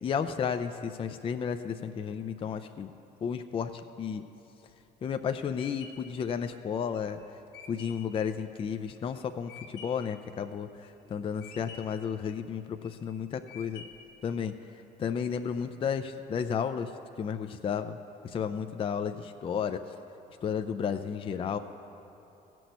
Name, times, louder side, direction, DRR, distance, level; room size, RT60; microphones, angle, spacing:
voice 1, 0.0-2.9 3.2-4.2 5.0-7.2 7.7-13.9 14.2-14.5 15.0-16.9 17.2-18.0 18.2-20.0 20.4-21.6, left 7 dB, 30° left, 8 dB, 0.4 m, -33 dB
sound 1, 4.7-10.1 10.6-11.1 11.4-12.1 12.6-13.1 13.5-14.2, left 6 dB, 75° left, 1.2 m, -49 dB
15.5 x 6.1 x 8.0 m, 2.9 s
cardioid pair, 110°, 17 cm